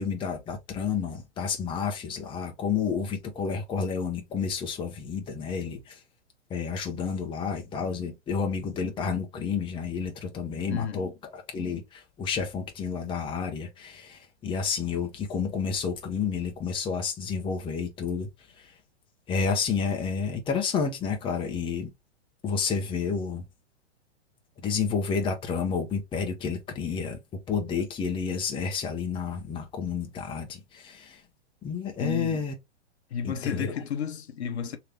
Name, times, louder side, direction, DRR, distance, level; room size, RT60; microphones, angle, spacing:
voice 1, 0.0-5.9 6.5-11.8 12.2-18.3 19.3-21.9 22.4-23.4 24.6-27.2 27.5-31.1 31.6-32.5 33.2-33.7, left 6 dB, 15° left, 0.8 m, -30 dB
voice 2, 10.7-11.0 32.0-32.4 33.1-34.8, left 7 dB, 65° left, 0.9 m, -32 dB
3.2 x 2.9 x 3.3 m
figure-of-eight pair, 110°, 35 cm